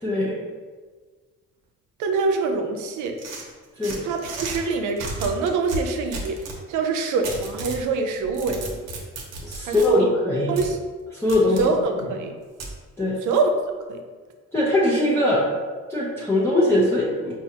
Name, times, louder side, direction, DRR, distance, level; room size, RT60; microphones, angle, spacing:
voice 1, 0.0-0.3 3.8-4.0 9.4-10.5 11.1-11.6 13.0-13.2 14.5-15.4 15.9-17.3, left 1 dB, 10° left, -9 dB, 0.8 m, -21 dB
voice 2, 2.0-3.2 4.0-6.4 6.7-8.8 9.6-10.1 10.5-10.8 11.6-12.3 13.2-13.5 13.9-14.0, right 4 dB, 80° right, 5 dB, 0.5 m, -25 dB
sound 1, 3.2-4.6 5.0-6.6 7.2-7.8 8.2-9.9 10.6-10.7 11.3-11.7 12.6-12.7, right 2 dB, 60° right, 0.8 m, -33 dB
4.7 x 2.3 x 2.8 m, 1.4 s
cardioid pair, 90°, 30 cm